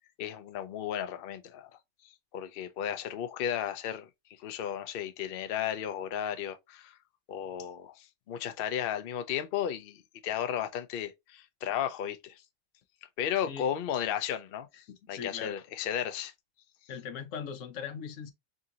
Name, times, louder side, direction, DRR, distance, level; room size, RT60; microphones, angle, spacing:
voice 1, 0.2-1.7 2.0-4.1 4.4-7.0 7.3-12.4 13.2-14.7 15.1-16.3, left 9 dB, 60° left, 0.7 m, -34 dB
voice 2, 14.7-15.6 16.9-18.3, left 7 dB, 85° left, 1.0 m, -40 dB
3.8 x 3.7 x 2.8 m
omnidirectional pair, 1.3 m